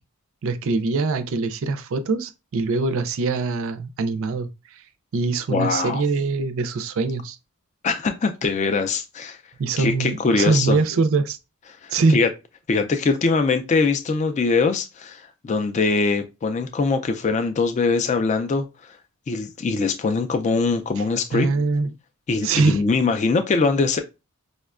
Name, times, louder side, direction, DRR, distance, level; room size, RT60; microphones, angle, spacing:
voice 1, 0.4-4.8 5.1-7.4 9.6-11.4 11.9-12.2 21.3-21.9 22.4-22.8, right 4 dB, 60° right, 0.4 m, -23 dB
voice 2, 5.5-6.0 7.8-9.4 9.8-10.8 11.8-12.3 12.7-19.0 19.3-21.5 22.3-24.0, left 4 dB, 30° left, 0.3 m, -22 dB
5.1 x 2.1 x 2.3 m
head